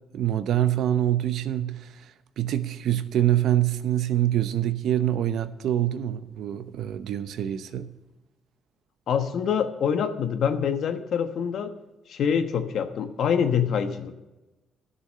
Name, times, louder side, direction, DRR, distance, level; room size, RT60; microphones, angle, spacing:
voice 1, 0.1-7.9, right 12 dB, 75° right, 0.8 m, -25 dB
voice 2, 9.1-11.7 12.1-14.2, left 7 dB, 70° left, 1.1 m, -25 dB
12.5 x 7.0 x 8.2 m
cardioid pair, 90°, 0 cm